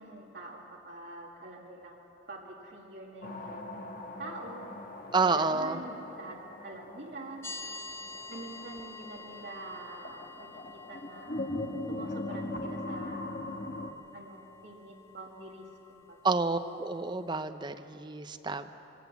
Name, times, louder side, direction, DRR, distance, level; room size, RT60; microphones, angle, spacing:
voice 1, 0.0-2.0 2.3-3.7 4.2-4.8 5.2-7.5 8.3-11.5 11.9-13.3 14.1-16.2, right 2 dB, 70° right, -2 dB, 2.2 m, -46 dB
sound 1, 3.2-13.9, left 2 dB, 50° left, 1.4 m, -41 dB
voice 2, 5.1-5.8 16.2-18.7, right 4 dB, 25° right, 8 dB, 0.7 m, -29 dB
sound 2, 7.4-17.4, left 4 dB, 15° left, 1.5 m, -49 dB
23.0 x 17.5 x 7.2 m, 2.8 s
head